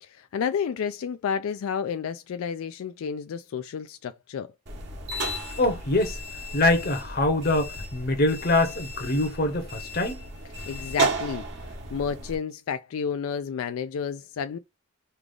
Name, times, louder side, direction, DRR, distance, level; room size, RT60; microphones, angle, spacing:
voice 1, 0.0-4.5 10.7-11.5 11.9-14.6, left 7 dB, 85° left, 0.3 m, -31 dB
sound 1, 4.7-12.4, right 2 dB, 55° right, 1.2 m, -33 dB
voice 2, 5.6-6.2 6.5-10.2, left 2 dB, 45° left, 0.8 m, -24 dB
3.3 x 2.4 x 3.7 m
head